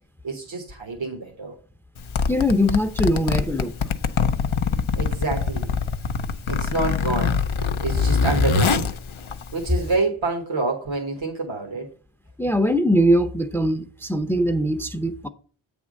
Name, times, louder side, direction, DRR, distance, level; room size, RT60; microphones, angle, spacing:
voice 1, 0.2-1.5 5.0-5.7 6.5-7.4 7.8-8.9 9.5-11.9, right 3 dB, 70° right, 1.3 m, -27 dB
Zipper (clothing), 2.0-9.9, left 5 dB, 80° left, 0.6 m, -24 dB
voice 2, 2.3-3.7 12.4-15.3, equal, 5° left, 0.6 m, -21 dB
8.3 x 3.6 x 6.2 m
wide cardioid pair, 40°, 48 cm